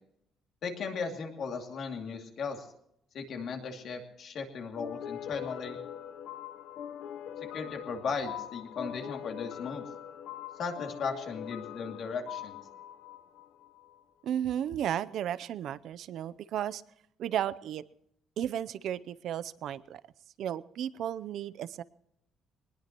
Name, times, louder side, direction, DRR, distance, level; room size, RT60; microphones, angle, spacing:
voice 1, 0.6-2.7 3.1-5.8 7.5-9.8 10.6-12.6, left 5 dB, 50° left, 3 dB, 2.6 m, -37 dB
sound 1, 4.8-14.0, left 10 dB, 70° left, 1.0 m, -42 dB
voice 2, 14.2-16.8 17.2-17.8 18.4-20.0 20.4-21.8, right 10 dB, 60° right, 16 dB, 0.6 m, -34 dB
21.5 x 20.0 x 3.0 m, 0.75 s
cardioid pair, 155°, 0 cm